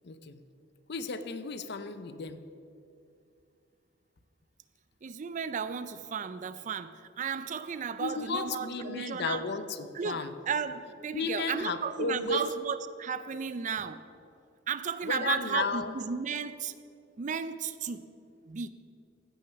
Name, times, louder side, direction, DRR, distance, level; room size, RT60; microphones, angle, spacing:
voice 1, 0.0-0.4 0.9-2.4 8.0-10.3 11.1-12.5 15.0-15.9, left 4 dB, 60° left, 11 dB, 0.6 m, -34 dB
voice 2, 5.0-9.5 9.9-14.0 14.7-16.7 17.2-18.0 18.5-18.7, right 6 dB, 40° right, 13 dB, 0.4 m, -34 dB
15.0 x 6.4 x 5.8 m, 2.5 s
head